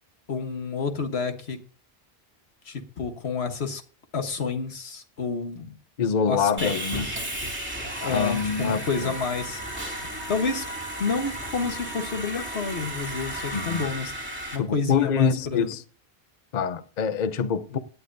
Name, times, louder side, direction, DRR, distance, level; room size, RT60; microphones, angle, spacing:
voice 1, 0.3-1.6 2.7-3.8 4.1-5.8 6.3-7.1 8.0-9.6 10.3-10.7 11.0-14.1 14.5-15.7 17.7-17.8, left 4 dB, 85° left, 1.6 m, -29 dB
voice 2, 6.0-7.1 8.0-9.1 13.5-13.8 14.6-15.8 16.5-17.8, left 6 dB, 50° left, 0.8 m, -25 dB
Sawing, 6.6-14.6, right 1 dB, 10° right, 2.8 m, -34 dB
17.5 x 9.9 x 2.7 m
omnidirectional pair, 1.1 m